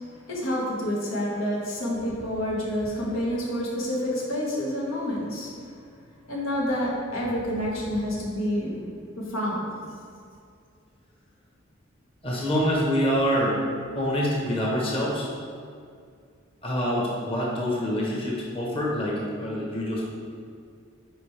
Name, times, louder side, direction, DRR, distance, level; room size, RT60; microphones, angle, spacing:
voice 1, 0.0-5.5 6.3-8.9 9.2-9.7, equal, 85° left, -4 dB, 1.7 m, -28 dB
voice 2, 12.2-13.6 13.9-15.3 16.6-20.0, equal, 30° left, -4 dB, 1.1 m, -26 dB
9.1 x 5.1 x 3.3 m, 2.2 s
head